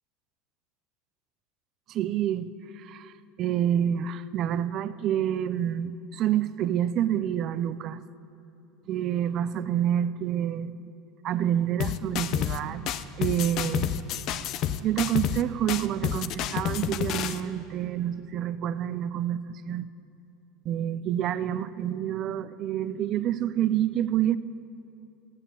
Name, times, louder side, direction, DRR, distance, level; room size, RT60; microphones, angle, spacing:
voice 1, 1.9-3.1 3.4-8.0 8.9-10.8 11.2-14.0 14.8-19.9 20.7-24.4, right 10 dB, 50° right, 0.5 m, -28 dB
sound 1, 11.8-12.6 12.9-15.4 15.7-17.4, left 10 dB, 55° left, 0.5 m, -29 dB
14.0 x 9.0 x 7.2 m
supercardioid pair, 105°, 0 cm